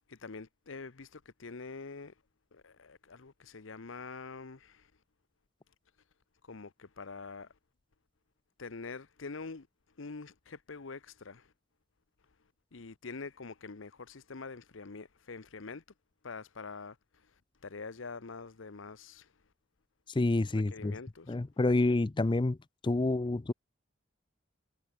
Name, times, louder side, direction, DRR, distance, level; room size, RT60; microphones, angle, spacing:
voice 1, 0.1-2.2 2.5-5.0 5.7-6.1 6.4-7.6 8.6-9.7 9.9-11.5 12.2-15.8 16.2-19.5 20.5-21.4, left 4 dB, 75° left, 0.9 m, -46 dB
voice 2, 20.1-20.9 21.3-22.6 22.8-23.5, left 2 dB, 25° left, 0.5 m, -28 dB
head